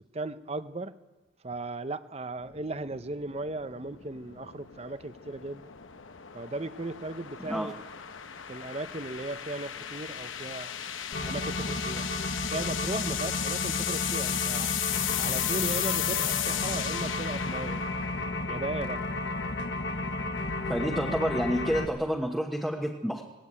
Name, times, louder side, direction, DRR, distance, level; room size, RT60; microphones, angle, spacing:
voice 1, 0.1-0.9 1.4-5.6 6.3-7.8 8.5-10.7 11.3-12.1 12.5-14.7 15.2-17.8 18.5-19.0, right 2 dB, 30° right, 12 dB, 0.7 m, -36 dB
sound 1, 2.4-18.7, left 11 dB, 75° left, 0.9 m, -35 dB
sound 2, 11.1-21.9, left 2 dB, 55° left, 1.4 m, -33 dB
voice 2, 20.7-23.2, equal, ahead, -1 dB, 1.2 m, -29 dB
19.0 x 18.0 x 8.9 m, 1.2 s
head